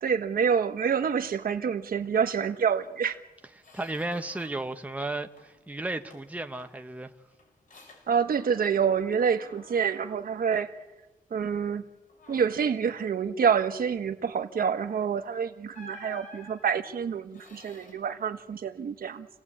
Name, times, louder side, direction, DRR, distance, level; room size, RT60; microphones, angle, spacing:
voice 1, 0.0-3.1 8.1-10.7 11.3-11.8 12.3-19.3, right 7 dB, 80° right, 1.5 m, -27 dB
Squeak, 2.8-3.0 3.3-4.8 5.1-5.7 6.1-8.9 9.2-11.0 11.4-11.7 12.1-12.7 14.8-15.0 15.7-17.9, left 2 dB, 60° left, 6.0 m, -52 dB
voice 2, 3.7-7.1, right 2 dB, 10° right, 1.1 m, -34 dB
29.0 x 17.5 x 8.7 m
wide cardioid pair, 145°, 15 cm